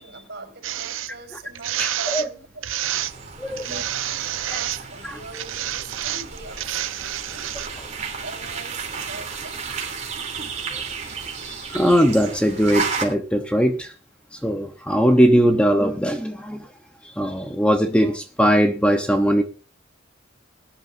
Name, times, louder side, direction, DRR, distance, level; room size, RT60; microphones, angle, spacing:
voice 1, 0.0-2.6 3.5-7.5 8.2-9.6, right 3 dB, 55° right, 4 dB, 5.5 m, -41 dB
sound 1, 0.6-1.1 1.5-2.3 2.6-3.1 3.6-4.8 5.3-7.7, right 12 dB, 80° right, 0.6 m, -28 dB
voice 2, 1.8-2.3 3.4-3.8 4.5-4.6 5.0-5.2 10.7-10.8 11.4-13.9 14.3-16.7 17.0-19.4, equal, 5° left, 5 dB, 0.9 m, -20 dB
sound 2, 2.8-13.0, right 5 dB, 35° right, 3.3 m, -33 dB
20.0 x 10.5 x 2.6 m, 0.34 s
head